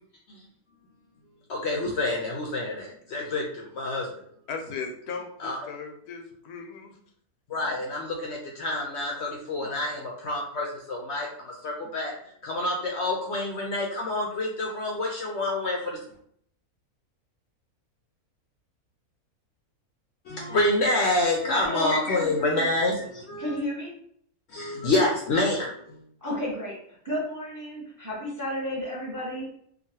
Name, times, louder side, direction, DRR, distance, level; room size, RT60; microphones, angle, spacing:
voice 1, 1.5-4.4 5.4-5.7 7.5-16.0 20.2-23.6 24.5-26.0, left 2 dB, 65° left, -1 dB, 0.7 m, -28 dB
voice 2, 4.5-6.9, left 5 dB, 90° left, 4 dB, 1.1 m, -37 dB
voice 3, 21.6-22.2 23.4-23.9 26.2-26.7 27.0-29.4, equal, 20° right, -5 dB, 0.6 m, -32 dB
3.0 x 2.4 x 2.7 m, 0.65 s
omnidirectional pair, 1.6 m